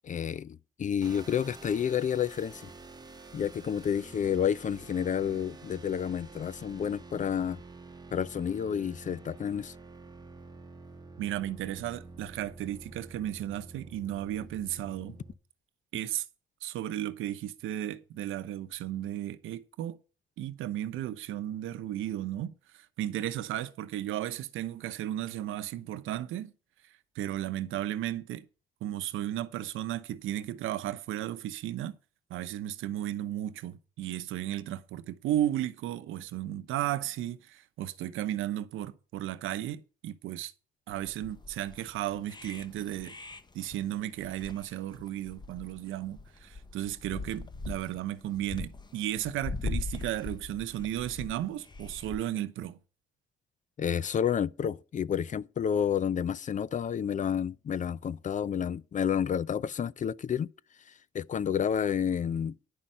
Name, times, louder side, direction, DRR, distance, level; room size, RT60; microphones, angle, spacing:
voice 1, 0.0-2.7 3.3-7.6 8.1-9.7 53.8-60.5 61.1-62.6, left 8 dB, 40° left, 0.5 m, -30 dB
sound 1, 1.0-15.3, right 3 dB, 20° right, 1.1 m, -49 dB
voice 2, 11.2-15.2 15.9-16.3 16.6-20.0 20.4-26.5 27.2-28.4 28.8-32.0 32.3-40.5 40.9-43.2 43.5-52.8, right 12 dB, 85° right, 0.8 m, -34 dB
sound 2, 40.9-52.2, left 3 dB, 20° left, 1.0 m, -41 dB
10.5 x 5.6 x 7.5 m
cardioid pair, 90°, 20 cm